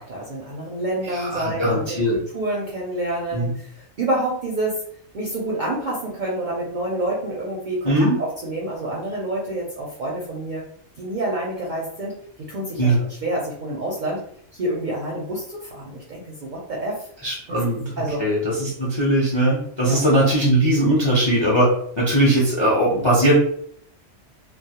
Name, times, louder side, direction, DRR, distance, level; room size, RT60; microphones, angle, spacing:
voice 1, 0.0-4.8 5.1-10.6 11.0-12.2 12.5-12.9 13.2-14.2 14.5-17.1 17.5-17.6 18.0-18.2 19.8-20.0, right 1 dB, 55° right, -4 dB, 0.5 m, -28 dB
voice 2, 1.0-2.1 3.3-3.5 7.8-8.2 12.8-13.0 17.2-17.9 18.2-21.7 22.0-23.3, right 1 dB, 35° left, -5 dB, 0.4 m, -19 dB
2.2 x 2.0 x 2.7 m, 0.64 s
omnidirectional pair, 1.3 m